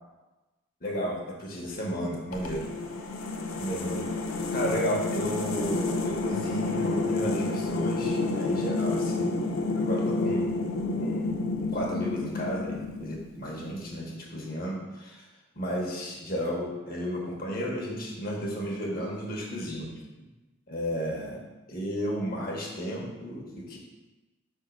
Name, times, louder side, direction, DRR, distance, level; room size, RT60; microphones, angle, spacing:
voice 1, 0.8-2.7 3.6-4.1 4.5-9.4 9.7-10.5 11.0-15.2 15.6-20.0 20.7-21.4 21.7-23.8, equal, 45° left, -2 dB, 1.2 m, -33 dB
sound 1, 2.3-13.4, left 3 dB, 90° left, 0.7 m, -30 dB
5.3 x 3.7 x 5.2 m, 1.1 s
head